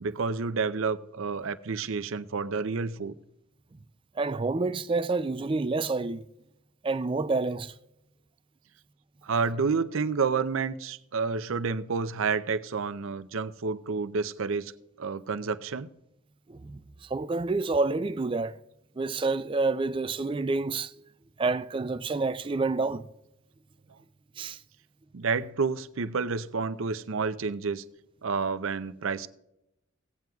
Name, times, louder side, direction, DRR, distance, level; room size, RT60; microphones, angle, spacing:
voice 1, 0.0-3.1 9.2-14.7 15.0-15.9 25.1-27.8 28.2-29.3, right 5 dB, 70° right, 0.6 m, -29 dB
voice 2, 4.2-6.2 6.8-7.7 16.5-18.6 19.0-20.9 21.4-23.0 24.4-24.6, right 3 dB, 25° right, 0.3 m, -28 dB
17.0 x 9.1 x 2.3 m
head